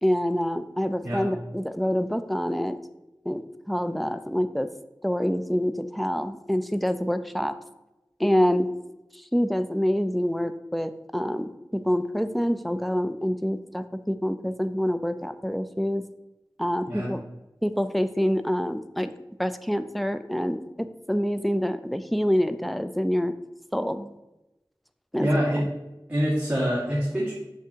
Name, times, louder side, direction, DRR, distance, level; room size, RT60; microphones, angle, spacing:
voice 1, 0.0-2.8 3.3-4.7 5.0-7.6 8.2-8.7 9.3-16.0 16.6-17.2 17.6-19.1 19.4-23.3 23.7-24.1 25.1-25.4, equal, ahead, 10 dB, 0.4 m, -26 dB
voice 2, 25.2-25.6 26.1-27.3, equal, 15° right, -8 dB, 2.0 m, -25 dB
6.6 x 6.0 x 2.8 m, 0.96 s
wide cardioid pair, 40°, 8 cm